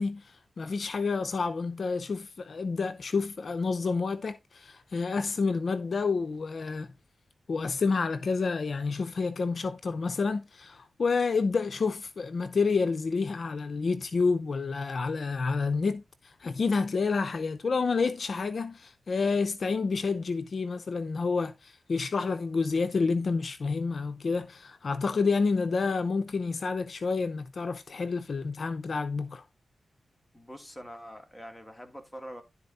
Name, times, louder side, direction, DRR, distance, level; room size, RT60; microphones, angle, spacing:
voice 1, 0.0-6.9 7.5-29.4, left 4 dB, 60° left, 0.6 m, -29 dB
voice 2, 30.3-32.4, equal, 10° left, 2.4 m, -44 dB
11.5 x 4.2 x 4.1 m
cardioid pair, 65°, 0 cm